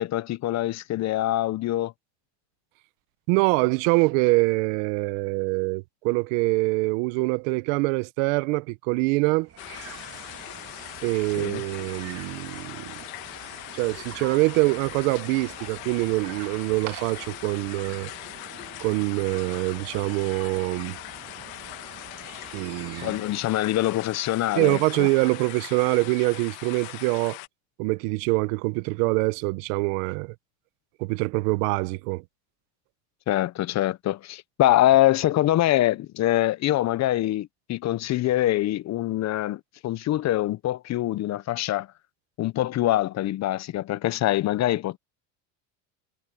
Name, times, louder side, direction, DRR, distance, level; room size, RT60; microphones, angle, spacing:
voice 1, 0.0-1.9 11.4-11.6 23.0-25.1 33.3-41.9 42.4-45.0, left 14 dB, 40° left, 0.8 m, -24 dB
voice 2, 3.3-9.5 11.0-13.0 13.7-18.1 18.8-21.0 22.5-23.1 24.6-27.4 27.8-30.3 31.0-32.2, right 25 dB, 75° right, 1.0 m, -24 dB
sound 1, 9.4-23.6, right 9 dB, 35° right, 2.9 m, -46 dB
sound 2, 9.6-27.5, left 23 dB, 80° left, 1.5 m, -41 dB
supercardioid pair, 105°, 40 cm